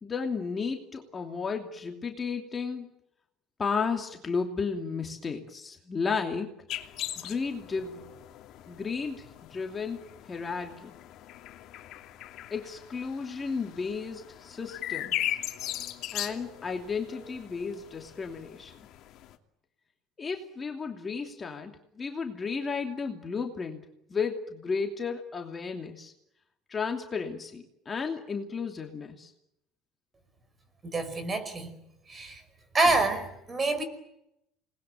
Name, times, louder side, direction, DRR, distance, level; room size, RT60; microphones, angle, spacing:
voice 1, 0.0-2.9 3.6-6.5 7.2-8.0 8.7-10.0 10.3-10.9 12.5-15.2 16.1-18.9 20.2-26.1 26.7-29.3, left 5 dB, 20° left, 3 dB, 2.8 m, -33 dB
sound 1, 6.7-19.4, left 13 dB, 55° left, 2.8 m, -39 dB
voice 2, 30.8-31.8 32.1-32.4 32.7-33.8, right 2 dB, 20° right, 11 dB, 5.3 m, -27 dB
28.5 x 20.5 x 9.3 m, 0.82 s
cardioid pair, 140°, 0 cm